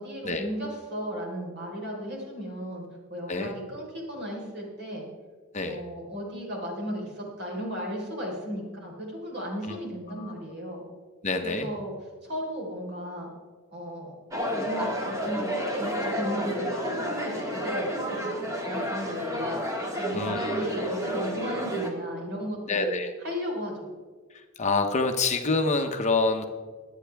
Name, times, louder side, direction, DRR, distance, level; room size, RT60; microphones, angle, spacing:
voice 1, 0.0-5.1 5.6-10.9 11.4-11.9 12.2-13.3 13.7-14.1 14.5-19.6 19.9-22.9 23.2-23.9, equal, 50° right, -2 dB, 4.2 m, -35 dB
voice 2, 11.2-11.7 20.1-20.6 22.7-23.1 24.6-26.4, left 3 dB, 30° left, 5 dB, 0.9 m, -26 dB
sound 1, 14.3-21.9, equal, 15° right, 1.7 m, -30 dB
23.5 x 9.1 x 3.5 m, 1.5 s
head